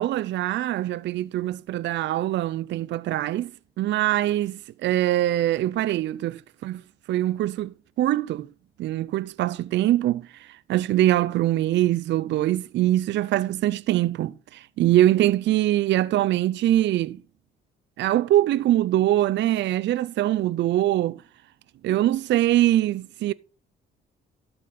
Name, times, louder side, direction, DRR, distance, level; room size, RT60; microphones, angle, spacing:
voice 1, 0.0-3.5 3.8-6.8 7.1-8.5 8.8-17.2 18.0-21.2 21.8-23.3, right 13 dB, 65° right, 0.4 m, -23 dB
12.5 x 5.1 x 5.6 m
cardioid pair, 90°, 20 cm